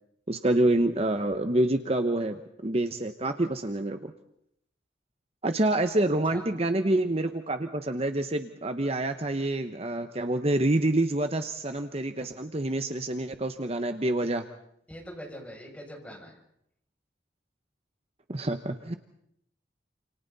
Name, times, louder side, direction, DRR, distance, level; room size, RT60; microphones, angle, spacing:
voice 1, 0.3-4.1 5.4-14.4 18.3-18.9, right 1 dB, 35° right, 8 dB, 1.0 m, -27 dB
voice 2, 14.9-16.3, equal, 10° left, -1 dB, 7.2 m, -42 dB
29.0 x 28.0 x 4.1 m, 0.73 s
head